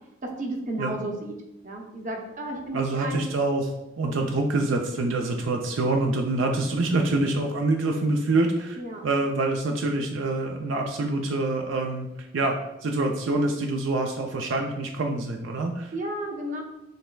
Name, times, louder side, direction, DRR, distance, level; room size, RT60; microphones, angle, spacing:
voice 1, 0.2-1.3 1.6-3.2 4.0-4.2 8.8-9.0 15.9-16.6, right 1 dB, 45° right, 1 dB, 0.7 m, -33 dB
voice 2, 2.7-3.7 4.0-8.8 9.0-12.1 12.3-12.6 12.8-15.9, right 2 dB, 80° right, 3 dB, 0.4 m, -26 dB
6.5 x 3.2 x 2.3 m, 0.95 s
head